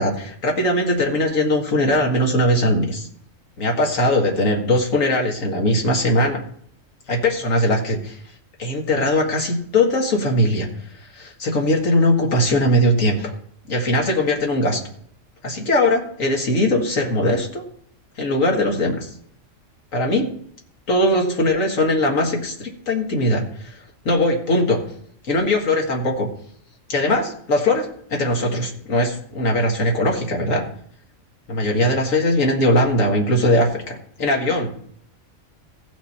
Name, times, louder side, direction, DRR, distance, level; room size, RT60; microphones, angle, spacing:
voice 1, 0.0-3.1 3.6-6.4 7.1-8.2 8.6-10.7 11.0-13.3 13.7-14.8 15.4-17.6 18.2-19.1 19.9-20.3 20.9-24.8 25.2-26.3 26.9-30.6 31.5-34.7, left 1 dB, 80° left, 1 dB, 2.1 m, -20 dB
16.5 x 5.9 x 4.3 m, 0.65 s
omnidirectional pair, 1.4 m